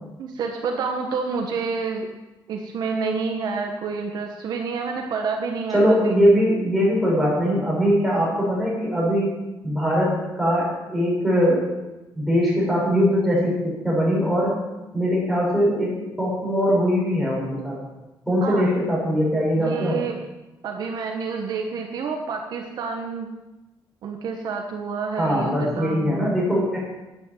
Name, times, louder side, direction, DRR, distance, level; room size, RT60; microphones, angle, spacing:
voice 1, 0.2-2.1 2.5-6.2 18.4-18.7 19.5-20.1 20.6-23.3 24.0-26.3, right 5 dB, 55° right, 2 dB, 1.5 m, -28 dB
voice 2, 5.7-9.3 9.6-11.7 12.1-14.6 14.9-17.8 18.3-20.0 25.2-26.8, equal, ahead, -6 dB, 6.1 m, -21 dB
11.0 x 9.5 x 7.4 m, 1.0 s
cardioid pair, 165°, 8 cm